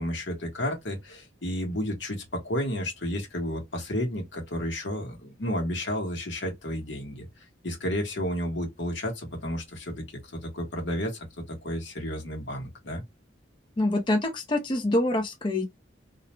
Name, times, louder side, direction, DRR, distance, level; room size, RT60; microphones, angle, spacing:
voice 1, 0.0-7.3 7.6-10.0 10.3-13.0, equal, 80° left, 1.0 m, -32 dB
voice 2, 13.8-15.7, left 1 dB, 25° left, 0.5 m, -25 dB
2.4 x 2.0 x 3.0 m
head